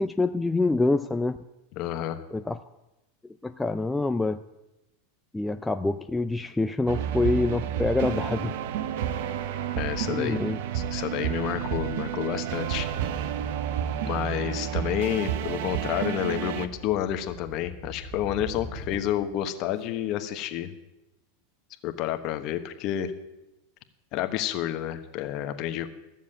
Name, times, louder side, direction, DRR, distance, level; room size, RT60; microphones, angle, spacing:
voice 1, 0.0-1.4 2.3-2.6 3.4-4.4 5.3-8.5 10.1-10.6, left 2 dB, 5° left, 8 dB, 0.4 m, -26 dB
voice 2, 1.8-2.2 9.8-10.4 10.7-12.9 14.1-20.7 21.8-23.1 24.1-25.9, left 12 dB, 45° left, 8 dB, 1.2 m, -30 dB
sound 1, 6.9-16.7, right 9 dB, 65° right, 0.8 m, -30 dB
sound 2, 16.5-19.3, right 2 dB, 15° right, 2.0 m, -43 dB
14.0 x 7.3 x 8.8 m, 0.95 s
supercardioid pair, 135°, 0 cm